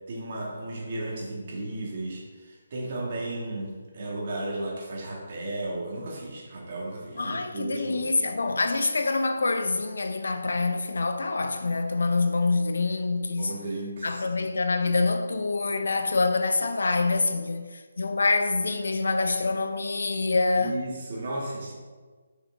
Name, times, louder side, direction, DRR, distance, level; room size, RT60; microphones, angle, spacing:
voice 1, 0.1-8.1 13.4-14.2 20.6-21.7, right 2 dB, 45° right, 2.0 m, -34 dB
voice 2, 7.2-13.6 14.0-20.8, left 3 dB, 75° left, 0.6 m, -26 dB
6.4 x 6.1 x 3.5 m
hypercardioid pair, 160°, 0 cm